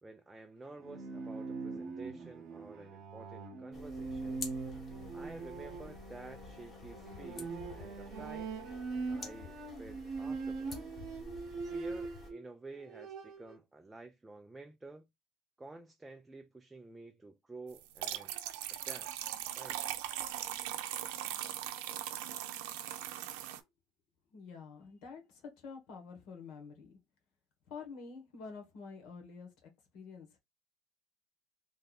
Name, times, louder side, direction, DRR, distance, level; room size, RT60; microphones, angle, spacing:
voice 1, 0.0-4.5 5.1-8.5 9.1-10.7 11.6-15.0 15.6-18.3 18.9-19.1 19.6-19.8, right 2 dB, 5° right, 0.4 m, -51 dB
Bowed string instrument, 0.7-12.4 12.7-13.5, right 4 dB, 35° right, 0.9 m, -42 dB
sound 1, 3.7-12.3, left 3 dB, 20° left, 1.0 m, -50 dB
sound 2, 17.8-23.6, right 12 dB, 75° right, 0.6 m, -39 dB
voice 2, 23.0-23.3 24.3-27.0 27.7-30.4, left 5 dB, 45° left, 1.4 m, -49 dB
3.2 x 2.7 x 4.0 m
cardioid pair, 175°, 0 cm